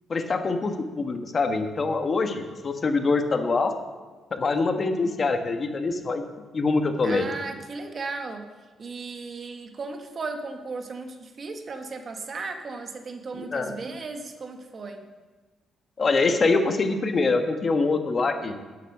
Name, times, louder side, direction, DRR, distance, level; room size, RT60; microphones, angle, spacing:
voice 1, 0.1-3.7 4.3-6.2 6.5-7.3 13.3-13.7 16.0-18.6, left 3 dB, 40° left, 6 dB, 1.2 m, -24 dB
voice 2, 7.0-8.5 8.8-15.1, right 3 dB, 45° right, 5 dB, 1.3 m, -36 dB
10.0 x 8.3 x 6.6 m, 1.3 s
cardioid pair, 90°, 0 cm